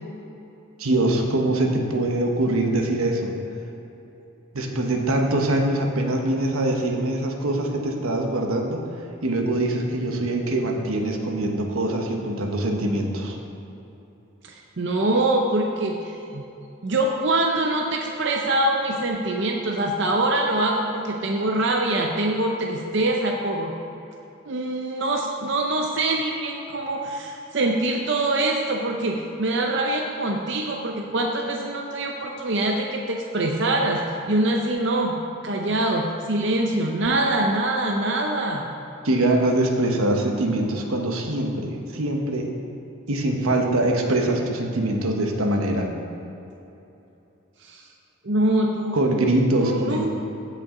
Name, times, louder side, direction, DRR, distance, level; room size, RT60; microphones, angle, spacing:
voice 1, 0.8-3.3 4.5-8.8 9.2-13.4 39.0-42.5 43.1-45.9 48.9-50.1, right 1 dB, 85° right, 2 dB, 1.1 m, -23 dB
voice 2, 14.4-16.5 16.8-23.7 24.5-38.8 47.6-47.8 48.2-49.0 49.6-50.1, right 2 dB, 55° right, 1 dB, 0.6 m, -24 dB
15.0 x 5.7 x 3.8 m, 2.9 s
head